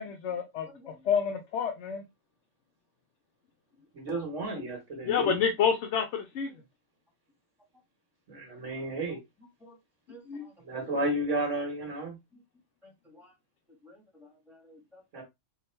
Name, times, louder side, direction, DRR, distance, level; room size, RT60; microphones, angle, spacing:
voice 1, 0.0-0.7 1.1-2.0 5.1-6.5 10.3-10.5, left 7 dB, 70° left, 1.0 m, -28 dB
voice 2, 3.9-5.5 8.3-9.2 10.6-12.2 15.1-15.2, right 1 dB, 80° right, 1.6 m, -32 dB
voice 3, 10.1-10.5 10.8-10.9 12.3-12.4 12.8-13.3 13.8-15.0, left 1 dB, ahead, 1.5 m, -54 dB
3.6 x 2.8 x 4.3 m
omnidirectional pair, 1.3 m